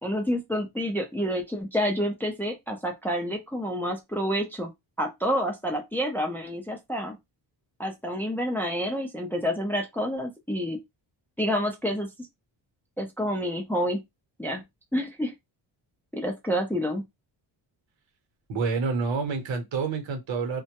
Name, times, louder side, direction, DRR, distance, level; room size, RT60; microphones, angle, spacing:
voice 1, 0.0-4.7 5.0-7.2 7.8-10.8 11.4-12.1 13.0-14.0 14.4-14.6 14.9-15.3 16.1-17.0, equal, 5° left, 0.4 m, -28 dB
voice 2, 18.5-20.6, right 4 dB, 80° right, 0.9 m, -28 dB
2.2 x 2.0 x 2.8 m
cardioid pair, 115°, 45 cm